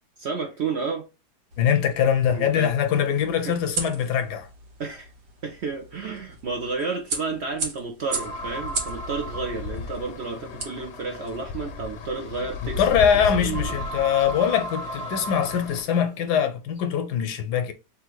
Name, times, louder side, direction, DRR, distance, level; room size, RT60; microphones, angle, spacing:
voice 1, 0.2-1.0 2.3-2.7 3.4-3.6 4.8-5.1 5.4-13.0 13.2-13.8, right 4 dB, 55° right, 0.8 m, -31 dB
sound 1, 1.5-11.4, right 3 dB, 85° right, 1.6 m, -37 dB
voice 2, 1.6-4.5 12.8-17.7, left 8 dB, 75° left, 1.2 m, -23 dB
sound 2, 8.1-15.8, left 5 dB, 55° left, 0.8 m, -35 dB
sound 3, 8.1-16.5, right 2 dB, 20° right, 0.4 m, -38 dB
3.4 x 2.5 x 4.5 m
omnidirectional pair, 1.8 m